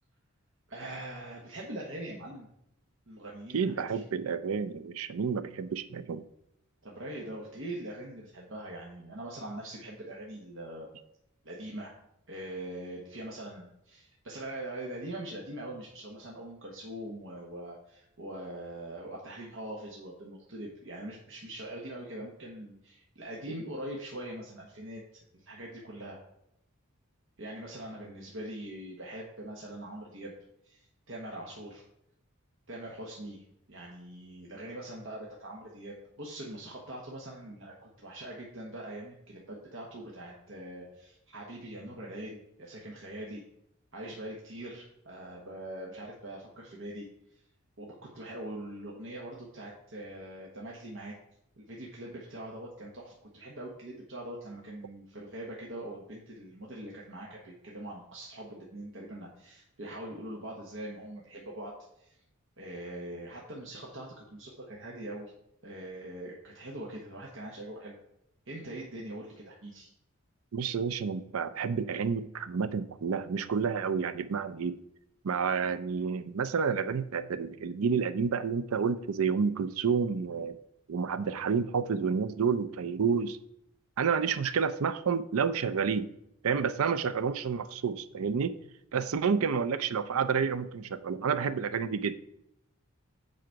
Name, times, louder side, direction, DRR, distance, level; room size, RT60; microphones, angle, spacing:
voice 1, 0.7-2.5 3.1-4.0 6.8-10.9 11.4-11.9 12.3-25.0 25.3-26.2 27.4-30.3 30.6-31.8 32.7-33.4 33.7-43.4 43.9-47.1 47.8-51.2 51.6-62.2 62.6-65.3 65.6-68.0 68.5-69.9, right 1 dB, 60° right, -2 dB, 1.1 m, -42 dB
voice 2, 3.5-6.2 70.5-74.8 75.2-80.6 80.9-83.4 84.0-86.1 86.4-88.5 88.9-92.2, right 6 dB, 75° right, 14 dB, 0.5 m, -29 dB
7.7 x 5.0 x 4.6 m, 0.77 s
head